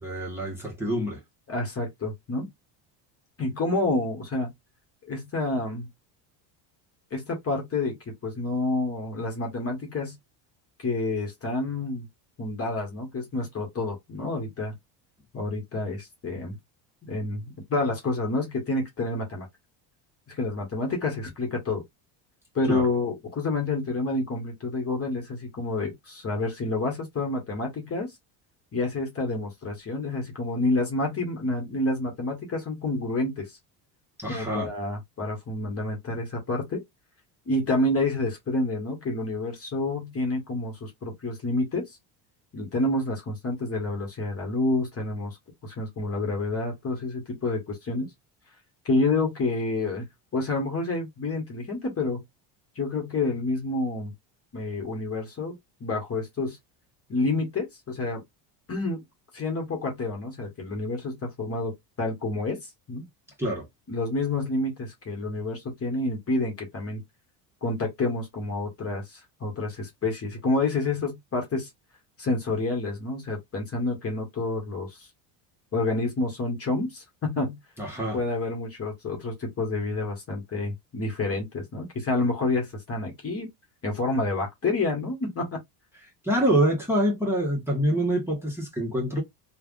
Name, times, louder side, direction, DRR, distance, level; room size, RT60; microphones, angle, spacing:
voice 1, 0.0-1.2 22.7-22.8 34.2-34.7 63.4-63.7 77.8-78.2 86.2-89.2, right 1 dB, 5° right, 1.3 m, -26 dB
voice 2, 1.5-2.5 3.4-4.5 5.1-5.9 7.1-8.0 8.2-10.1 10.8-12.1 12.4-14.7 15.3-16.6 17.0-19.5 20.3-21.8 22.5-28.1 28.7-33.5 34.3-36.8 37.5-41.9 42.5-45.4 45.6-48.1 48.8-50.0 50.3-52.2 52.7-54.1 54.5-55.5 55.8-56.6 57.1-58.2 58.7-59.0 59.3-62.6 62.9-63.0 63.9-67.0 67.6-71.7 72.2-75.1 75.7-77.6 78.1-83.5 83.8-85.6, left 2 dB, 30° left, 1.3 m, -28 dB
3.3 x 2.5 x 2.5 m
supercardioid pair, 100°, 47 cm